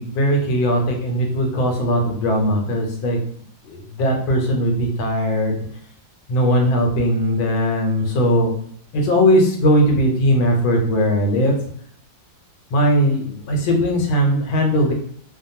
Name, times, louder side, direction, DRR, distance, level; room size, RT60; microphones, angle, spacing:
voice 1, 0.0-3.2 3.7-5.6 6.3-8.5 8.9-11.7 12.7-14.9, equal, 85° left, 2 dB, 1.5 m, -19 dB
3.2 x 2.2 x 2.7 m, 0.62 s
omnidirectional pair, 2.1 m